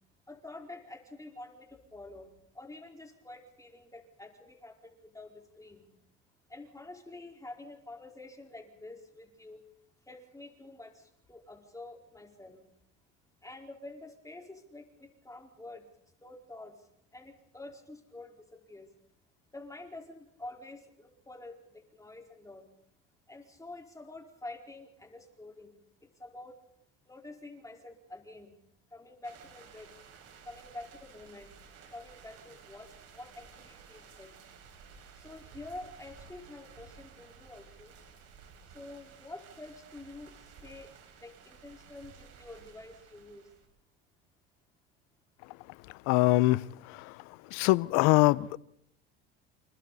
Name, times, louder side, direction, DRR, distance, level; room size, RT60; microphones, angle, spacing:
voice 1, 0.3-5.9 6.5-9.6 10.1-12.7 13.4-15.9 16.2-18.9 19.5-22.7 23.3-26.6 27.0-28.5 28.9-29.9 30.4-31.5 31.9-34.3 35.1-37.9 38.7-43.5, left 2 dB, 10° left, 4.7 m, -48 dB
sound 1, 29.2-43.7, right 6 dB, 60° right, 6.6 m, -54 dB
voice 2, 46.1-47.1 47.5-48.6, left 20 dB, 70° left, 0.8 m, -24 dB
29.0 x 28.0 x 4.2 m
supercardioid pair, 85°, 29 cm